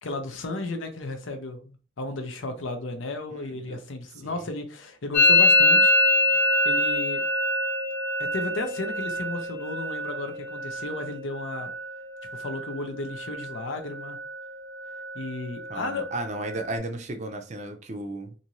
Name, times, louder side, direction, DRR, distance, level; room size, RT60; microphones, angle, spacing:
voice 1, 0.0-5.9 6.6-7.2 8.3-11.7 12.3-14.2 15.1-16.1, left 2 dB, 80° left, 0.6 m, -34 dB
Musical instrument, 5.1-12.8 13.0-13.6 13.9-14.5 14.7-16.8, left 2 dB, 15° left, 0.8 m, -25 dB
voice 2, 15.7-18.3, right 2 dB, 35° right, 0.4 m, -34 dB
2.6 x 2.5 x 2.9 m
head